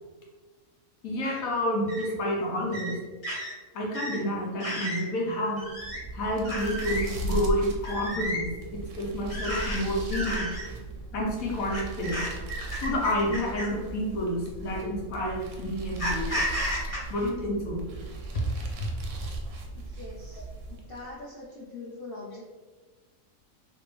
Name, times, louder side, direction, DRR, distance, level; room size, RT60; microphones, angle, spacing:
voice 1, 1.0-2.9 3.7-5.7 6.1-10.5 11.1-12.2 12.5-16.5 17.1-17.8 18.3-18.4, equal, 75° left, -2 dB, 1.3 m, -29 dB
sound 1, 1.2-1.4 1.9-2.1 2.7-2.9 3.2-3.5 3.9-4.2 4.6-5.0 5.6-6.0 6.4-7.0 7.8-8.4 9.3-9.8 10.1-10.6 11.7-13.8 14.7-14.8 16.0-17.0, equal, 25° left, 1.1 m, -33 dB
sound 2, 5.7-21.1, right 1 dB, 65° right, 0.9 m, -37 dB
voice 2, 19.7-20.4 20.7-22.4, left 2 dB, 55° left, -5 dB, 0.7 m, -42 dB
3.4 x 2.9 x 3.3 m, 1.3 s
omnidirectional pair, 1.5 m